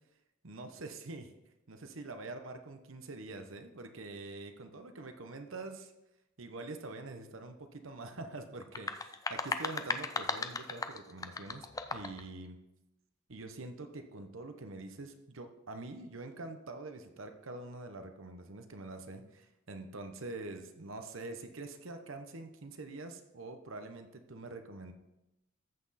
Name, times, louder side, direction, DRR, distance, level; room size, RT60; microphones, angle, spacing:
voice 1, 0.4-1.3 1.7-5.9 6.4-12.6 13.3-24.9, right 2 dB, 70° right, 7 dB, 1.0 m, -45 dB
sound 1, 8.6-12.2, left 4 dB, 15° left, 0.4 m, -37 dB
14.0 x 6.0 x 4.2 m, 0.93 s
head